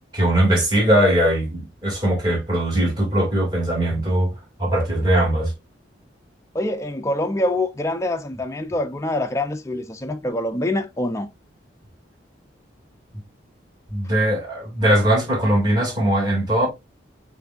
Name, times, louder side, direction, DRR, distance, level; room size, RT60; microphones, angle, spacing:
voice 1, 0.1-4.3 4.6-5.5 13.9-16.7, right 1 dB, 20° right, 2.2 m, -20 dB
voice 2, 6.5-11.3, left 1 dB, 15° left, 0.4 m, -25 dB
6.7 x 2.6 x 2.4 m
head